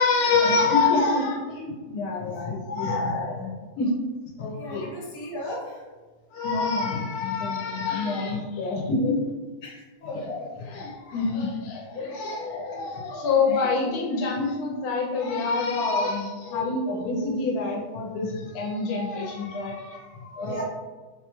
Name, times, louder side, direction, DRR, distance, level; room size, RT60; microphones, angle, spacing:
voice 1, 0.0-3.9 4.4-4.9 6.3-9.3 10.1-20.6, left 3 dB, 85° left, -1 dB, 1.1 m, -26 dB
voice 2, 4.5-5.8 9.6-10.5 13.5-13.6 20.4-20.6, left 1 dB, 45° left, -3 dB, 0.9 m, -36 dB
3.5 x 2.2 x 2.9 m, 1.3 s
omnidirectional pair, 1.6 m